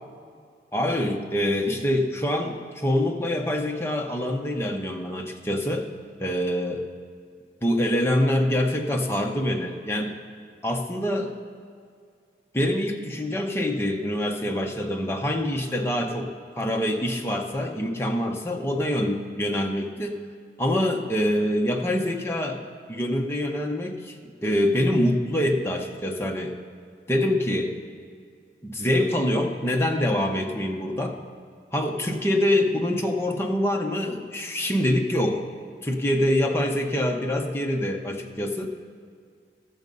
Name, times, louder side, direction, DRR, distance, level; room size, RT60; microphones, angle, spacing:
voice 1, 0.7-5.9 6.2-6.9 7.6-10.1 10.6-11.3 12.5-20.2 20.6-22.6 22.9-26.5 27.1-27.7 28.6-31.2 31.7-35.5 35.8-38.7, left 1 dB, 15° left, 2 dB, 0.8 m, -25 dB
13.0 x 7.5 x 5.3 m, 2.2 s
head